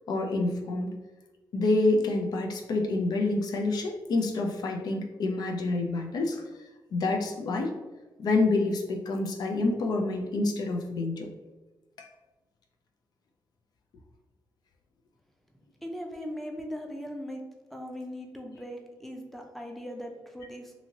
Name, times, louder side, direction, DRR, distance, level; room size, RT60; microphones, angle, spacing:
voice 1, 0.1-0.9 1.5-6.4 6.9-7.7 8.2-11.3 12.0-12.1, left 2 dB, 70° left, 3 dB, 0.5 m, -27 dB
voice 2, 15.8-17.4 17.7-20.7, equal, 5° left, 2 dB, 0.5 m, -39 dB
2.7 x 2.7 x 2.8 m, 1.1 s
cardioid pair, 90°, 7 cm